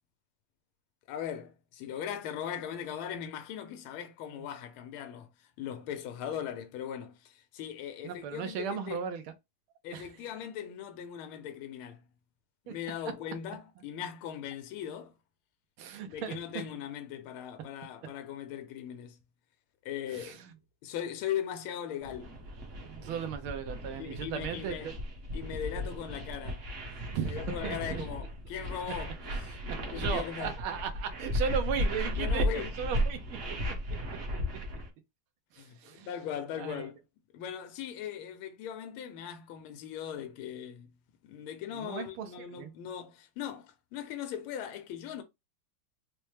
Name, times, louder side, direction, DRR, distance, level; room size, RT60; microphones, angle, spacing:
voice 1, 1.1-9.0 9.8-12.0 12.7-15.1 16.1-19.2 19.8-20.4 20.8-22.3 24.0-24.9 25.3-26.7 27.2-29.6 29.9-30.6 32.2-32.7 35.6-37.0 37.3-40.9 41.3-45.2, left 9 dB, 80° left, 1.5 m, -39 dB
voice 2, 8.0-9.2 9.9-10.1 12.7-12.8 15.8-16.4 20.1-20.4 22.8-24.9 27.1-28.0 30.0-33.2 35.5-36.1 36.6-36.9 41.7-42.3 42.5-42.7, right 7 dB, 85° right, 1.5 m, -36 dB
sound 1, 22.0-34.9, equal, 50° right, 1.0 m, -35 dB
4.4 x 2.1 x 3.2 m
omnidirectional pair, 2.3 m